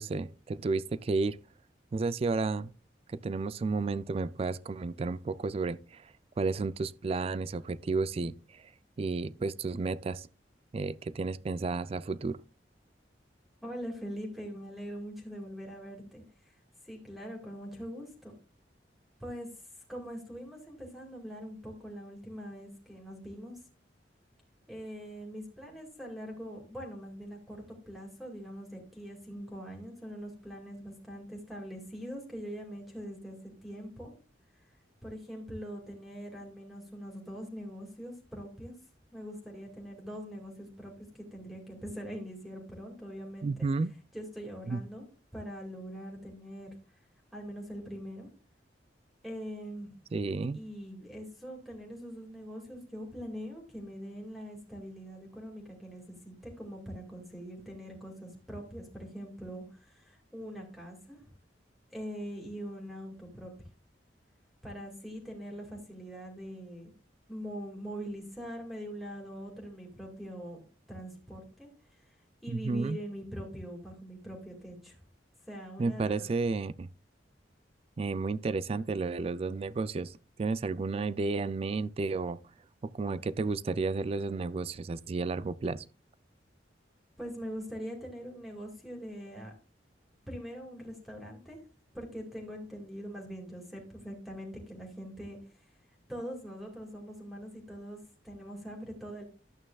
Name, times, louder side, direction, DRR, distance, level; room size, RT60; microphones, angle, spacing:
voice 1, 0.0-1.4 1.9-2.7 3.1-6.1 6.4-8.6 9.0-10.3 10.7-12.4 43.4-43.9 44.7-44.8 50.1-50.6 72.5-73.0 75.8-76.9 78.0-82.4 82.9-85.8, right 3 dB, 35° right, 0.3 m, -32 dB
voice 2, 13.6-16.5 16.8-18.3 19.2-19.5 19.9-23.6 24.7-34.1 35.0-38.7 39.1-43.7 44.1-45.1 45.3-46.7 47.3-48.3 49.2-50.0 50.5-61.2 61.9-63.5 64.6-66.9 67.3-70.6 70.9-72.1 72.4-75.0 75.5-76.3 87.2-89.5 90.3-91.6 91.9-95.6 96.1-98.0 98.2-99.2, equal, ahead, 2.1 m, -43 dB
11.5 x 8.7 x 2.3 m
head